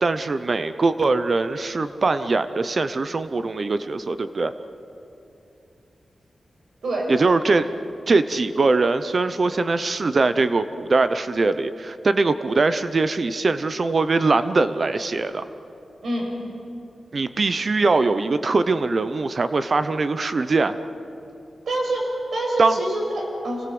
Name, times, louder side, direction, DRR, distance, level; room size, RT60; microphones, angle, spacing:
voice 1, 0.0-4.5 7.1-7.7 8.1-15.5 17.1-20.7 22.6-22.8, right 3 dB, 50° right, 11 dB, 0.7 m, -22 dB
voice 2, 6.8-7.1 16.0-16.3 21.7-23.7, right 1 dB, 75° right, 0 dB, 6.2 m, -26 dB
26.0 x 20.0 x 7.9 m, 2.8 s
wide cardioid pair, 95°, 0 cm